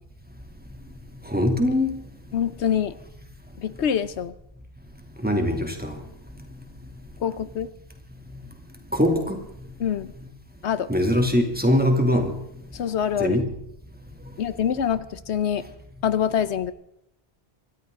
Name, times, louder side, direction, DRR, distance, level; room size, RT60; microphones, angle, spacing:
voice 1, 1.3-1.9 5.2-5.9 8.9-9.4 10.9-12.3 13.2-13.5, left 1 dB, 10° right, 2.6 m, -21 dB
voice 2, 2.3-2.9 3.6-4.3 7.2-7.7 9.8-10.1 10.6-10.9 12.7-13.4 14.4-15.6 16.0-16.7, left 8 dB, 90° left, 1.1 m, -25 dB
25.5 x 13.5 x 3.7 m
omnidirectional pair, 1.1 m